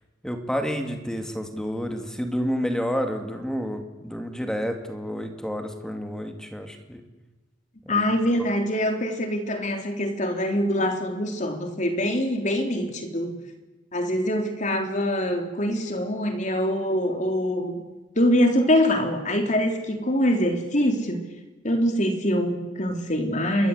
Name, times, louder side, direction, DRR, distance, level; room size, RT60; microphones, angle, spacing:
voice 1, 0.2-7.0 7.9-8.0, equal, 5° left, 5 dB, 2.6 m, -29 dB
voice 2, 7.9-13.4 13.9-17.9 18.2-21.3 21.6-23.7, equal, 40° left, 5 dB, 3.6 m, -24 dB
28.5 x 22.5 x 8.2 m, 1.2 s
head